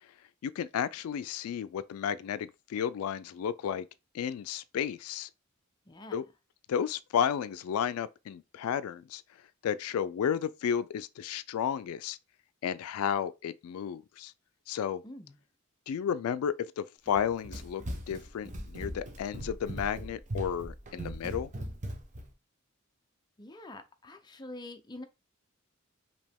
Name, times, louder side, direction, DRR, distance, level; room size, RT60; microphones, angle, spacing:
voice 1, 0.4-3.9 4.1-5.3 6.1-6.2 6.7-9.2 9.6-12.2 12.6-14.3 14.7-15.0 15.9-17.8 18.1-21.5, left 8 dB, 80° left, 0.3 m, -32 dB
voice 2, 5.9-6.2 15.0-15.4 23.4-25.0, left 2 dB, 20° left, 0.6 m, -45 dB
Run, 17.1-22.3, right 1 dB, 35° right, 0.9 m, -39 dB
5.2 x 2.9 x 3.4 m
head